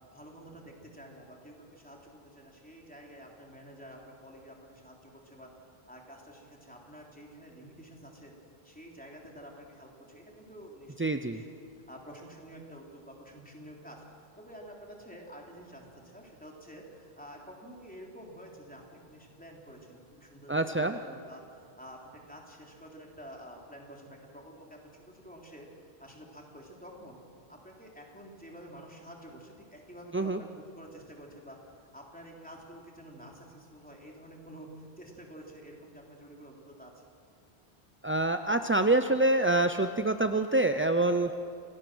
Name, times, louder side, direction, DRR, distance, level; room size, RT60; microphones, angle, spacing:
voice 1, 0.1-5.5 5.9-8.3 8.6-11.5 11.9-14.0 14.4-27.2 27.5-31.6 31.9-36.9, equal, 10° left, -1 dB, 3.4 m, -49 dB
voice 2, 11.0-11.4 20.5-21.0 30.1-30.4 38.0-41.3, right 2 dB, 20° right, 7 dB, 0.3 m, -26 dB
27.5 x 18.5 x 6.2 m, 2.4 s
omnidirectional pair, 1.1 m